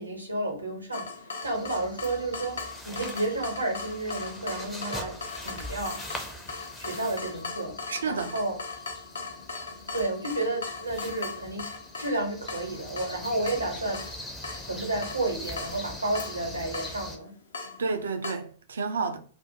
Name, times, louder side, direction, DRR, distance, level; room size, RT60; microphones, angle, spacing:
voice 1, 0.0-5.2 5.4-6.0 6.8-7.8 8.1-8.6 9.9-11.7 12.0-14.0 14.7-17.3, right 2 dB, 85° right, 0.8 m, -31 dB
Water tap faucet / Drip, 0.9-18.3, left 4 dB, 70° left, 0.5 m, -39 dB
sound 1, 1.4-17.2, left 1 dB, 5° left, 0.5 m, -43 dB
voice 2, 7.9-8.3 17.8-19.2, right 4 dB, 70° right, 0.3 m, -30 dB
2.4 x 2.1 x 2.7 m
figure-of-eight pair, 100°, 0 cm